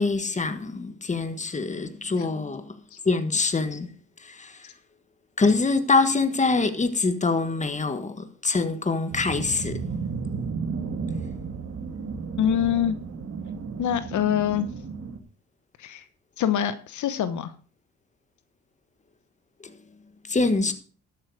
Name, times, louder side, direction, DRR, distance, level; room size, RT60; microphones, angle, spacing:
voice 1, 0.0-2.8 3.0-3.9 4.2-4.7 5.4-9.8 19.6-19.8 20.3-20.7, left 3 dB, 25° left, 1.6 m, -25 dB
sound 1, 9.1-15.2, right 5 dB, 55° right, 1.8 m, -33 dB
voice 2, 12.4-13.0 13.8-14.7 15.8-16.0 16.4-17.5, left 10 dB, 75° left, 1.1 m, -25 dB
12.5 x 8.2 x 4.9 m
cardioid pair, 90°, 30 cm